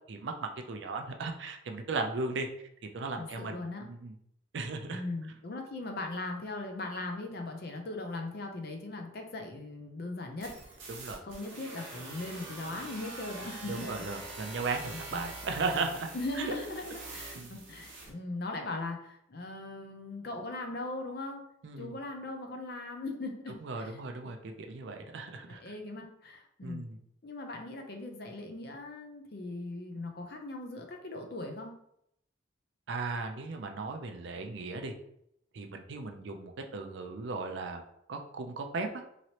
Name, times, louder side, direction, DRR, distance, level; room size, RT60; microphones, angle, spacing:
voice 1, 0.1-2.5 2.9-4.1 4.5-5.0 10.9-11.2 13.7-16.1 16.4-16.5 17.4-17.6 21.6-22.0 23.6-25.7 26.6-27.0 32.9-34.9 35.5-37.8 38.1-38.9, right 3 dB, 65° right, 4 dB, 0.4 m, -36 dB
voice 2, 3.2-3.8 4.9-10.5 11.2-14.0 14.5-15.3 16.1-21.4 21.8-24.0 25.5-26.9 27.2-31.7, left 2 dB, 50° left, 3 dB, 0.5 m, -39 dB
sound 1, 10.4-18.1, right 2 dB, 85° right, 1.0 m, -45 dB
3.0 x 2.9 x 2.8 m, 0.74 s
head